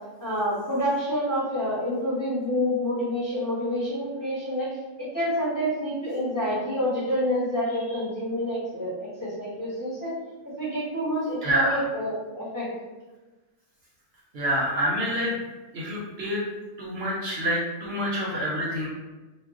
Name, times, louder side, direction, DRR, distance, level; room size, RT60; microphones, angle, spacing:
voice 1, 0.2-10.1 10.6-12.7, equal, 15° left, -9 dB, 1.0 m, -28 dB
voice 2, 11.4-11.8 14.3-15.4 15.7-16.4 16.8-18.9, equal, 60° right, -5 dB, 0.8 m, -27 dB
2.3 x 2.2 x 3.5 m, 1.2 s
omnidirectional pair, 1.3 m